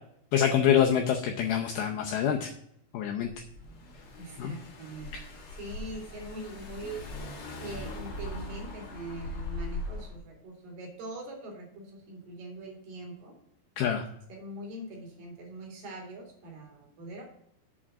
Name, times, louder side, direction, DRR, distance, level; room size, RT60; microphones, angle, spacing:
voice 1, 0.3-2.5 2.9-3.3 4.4-4.5 13.8-14.0, left 9 dB, 80° left, 2 dB, 2.2 m, -25 dB
Car / Engine, 3.3-10.2, left 2 dB, 60° left, 1.4 m, -40 dB
voice 2, 4.2-7.0 7.6-13.4 14.3-17.3, right 1 dB, 55° right, 1 dB, 3.6 m, -42 dB
7.2 x 5.0 x 7.1 m, 0.74 s
omnidirectional pair, 5.1 m